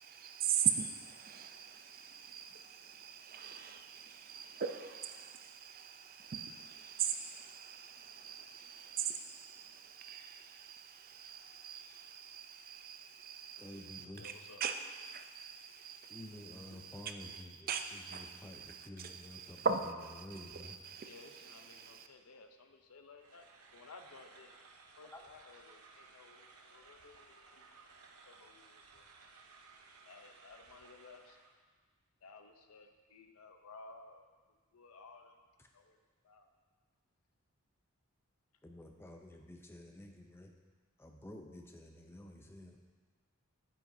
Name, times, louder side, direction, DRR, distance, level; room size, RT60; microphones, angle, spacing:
voice 1, 0.0-22.1, right 7 dB, 40° right, 6 dB, 0.4 m, -41 dB
voice 2, 13.6-14.2 16.1-17.7 18.1-19.7 20.2-20.8 25.1-25.2 38.6-40.5 41.0-42.8, left 1 dB, 10° left, 3 dB, 0.5 m, -51 dB
voice 3, 14.2-14.6 21.0-24.6 25.0-27.7 28.2-29.1 30.0-31.4 32.2-34.3 34.7-35.4 35.7-36.5, left 3 dB, 80° left, 6 dB, 0.7 m, -57 dB
sound 1, 23.2-31.6, right 4 dB, 85° right, 0.8 m, -59 dB
9.2 x 7.6 x 2.7 m, 1.4 s
head